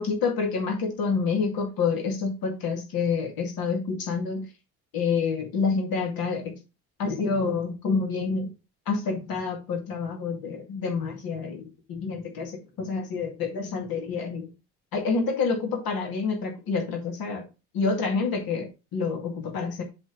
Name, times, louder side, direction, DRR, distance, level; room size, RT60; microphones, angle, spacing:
voice 1, 0.0-4.5 4.9-6.6 7.0-8.5 8.9-14.5 14.9-17.5 17.7-19.8, left 5 dB, 50° left, 3 dB, 2.3 m, -28 dB
7.6 x 3.7 x 6.3 m, 0.28 s
figure-of-eight pair, 55°, 45 cm